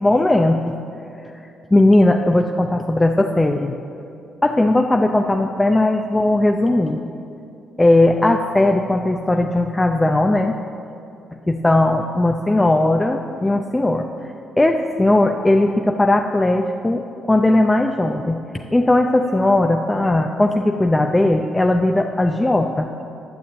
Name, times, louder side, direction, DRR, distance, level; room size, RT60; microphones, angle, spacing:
voice 1, 0.0-0.8 1.7-3.7 4.4-7.0 7.8-10.6 11.5-14.3 14.6-18.4 18.7-22.9, left 1 dB, 15° left, 3 dB, 0.5 m, -17 dB
9.4 x 7.1 x 7.8 m, 2.6 s
cardioid pair, 90°, 0 cm